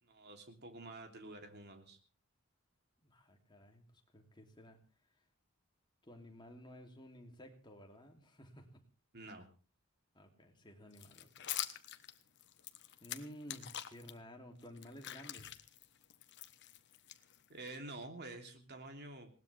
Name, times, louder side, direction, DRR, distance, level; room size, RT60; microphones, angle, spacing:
voice 1, 0.0-2.0 9.1-9.5 17.5-19.3, right 2 dB, 50° right, 4 dB, 3.2 m, -49 dB
voice 2, 3.0-4.8 6.0-8.8 10.1-11.5 13.0-15.5, equal, 20° left, 2 dB, 3.0 m, -54 dB
sound 1, 10.9-14.1 14.6-17.7, left 12 dB, 55° left, 1.2 m, -46 dB
20.5 x 19.0 x 3.5 m, 0.37 s
head